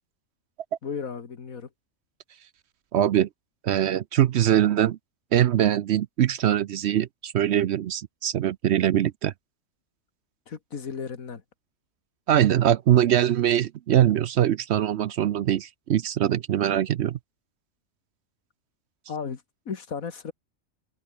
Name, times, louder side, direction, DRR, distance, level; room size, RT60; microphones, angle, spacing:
voice 1, 0.8-1.7 10.5-11.4 12.9-13.0 19.1-20.3, left 6 dB, 90° left, 2.2 m, -35 dB
voice 2, 2.9-3.3 3.6-5.0 5.3-9.3 12.3-17.2, right 11 dB, 65° right, 0.8 m, -22 dB
open air
omnidirectional pair, 1.4 m